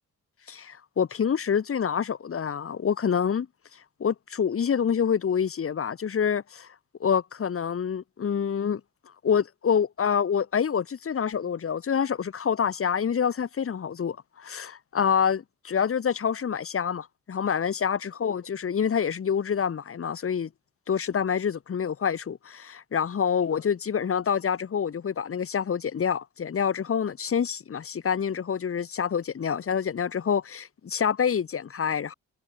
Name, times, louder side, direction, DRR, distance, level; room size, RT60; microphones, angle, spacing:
voice 1, 0.5-3.5 4.0-6.7 7.0-8.8 9.2-20.5 20.9-32.1, left 7 dB, 45° left, 4.4 m, -27 dB
cardioid pair, 90°, 30 cm